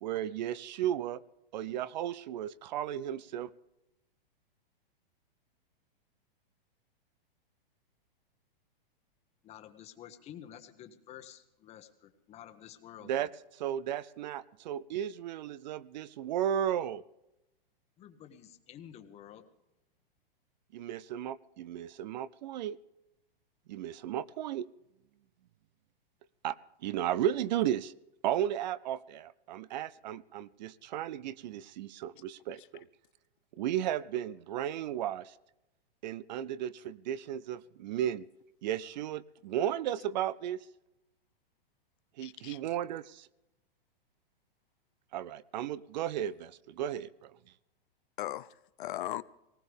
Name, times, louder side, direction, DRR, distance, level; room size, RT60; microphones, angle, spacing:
voice 1, 0.0-1.2 1.5-3.5 13.1-13.3 13.6-17.0 20.7-22.8 23.7-24.7 26.4-26.6 26.8-27.9 28.2-32.8 33.6-35.3 36.0-38.2 38.6-40.6 42.2-43.3 45.1-47.3, right 11 dB, 50° right, 0.5 m, -34 dB
voice 2, 9.4-13.3 18.0-19.4, left 10 dB, 20° left, 1.2 m, -50 dB
voice 3, 42.2-42.6 48.2-49.2, left 14 dB, 60° left, 0.6 m, -38 dB
19.5 x 18.0 x 3.5 m
hypercardioid pair, 150°, 29 cm